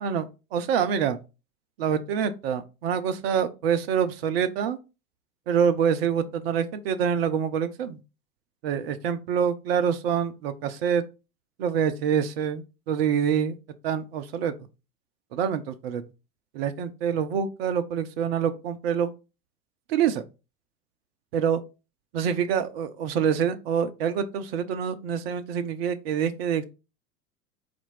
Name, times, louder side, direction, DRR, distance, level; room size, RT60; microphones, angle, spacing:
voice 1, 0.0-1.2 1.8-4.8 5.5-8.0 8.6-11.0 11.6-13.6 13.8-14.5 15.3-16.0 16.5-19.1 19.9-20.2 21.3-21.6 22.1-26.6, right 8 dB, 40° right, 0.5 m, -26 dB
4.2 x 2.5 x 4.2 m
figure-of-eight pair, 95°, 47 cm